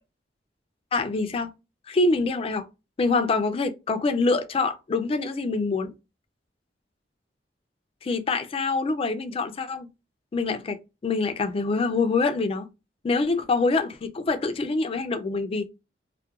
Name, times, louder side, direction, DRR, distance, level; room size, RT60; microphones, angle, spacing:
voice 1, 0.9-1.5 1.9-2.7 3.0-5.9 8.0-9.9 10.3-12.7 13.0-15.7, left 3 dB, 35° left, 0.3 m, -25 dB
2.3 x 2.1 x 2.8 m
head